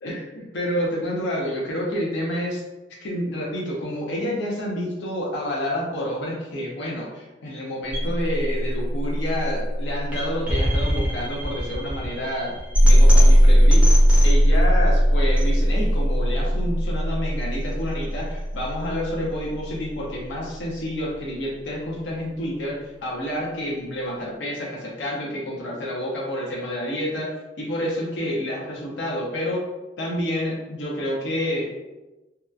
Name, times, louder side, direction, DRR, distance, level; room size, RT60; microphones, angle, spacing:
voice 1, 0.0-2.6 3.0-12.5 12.8-13.9 14.2-27.3 27.6-29.6 30.0-31.6, equal, 75° left, -3 dB, 0.5 m, -29 dB
sound 1, 7.9-19.9, equal, 5° right, 0.5 m, -19 dB
2.7 x 2.2 x 2.3 m, 1.1 s
head